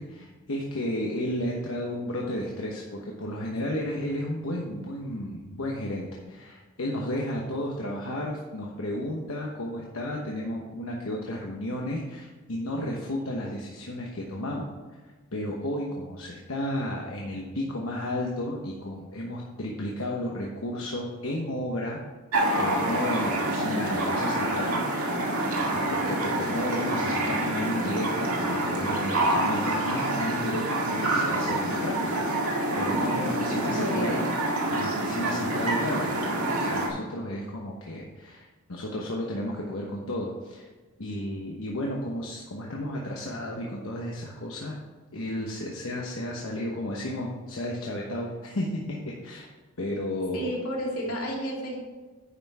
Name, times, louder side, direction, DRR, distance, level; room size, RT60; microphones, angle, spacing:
voice 1, 0.0-14.7 15.3-22.0 22.6-24.8 25.3-34.2 34.7-40.6 41.0-44.8 45.1-49.5 49.8-50.6 51.0-51.1, left 1 dB, 65° left, -2 dB, 1.1 m, -33 dB
sound 1, 22.3-36.9, right 1 dB, 85° right, 2.0 m, -27 dB
voice 2, 33.5-34.3 50.3-51.8, equal, 85° left, -3 dB, 2.9 m, -32 dB
9.8 x 5.8 x 4.8 m, 1.3 s
head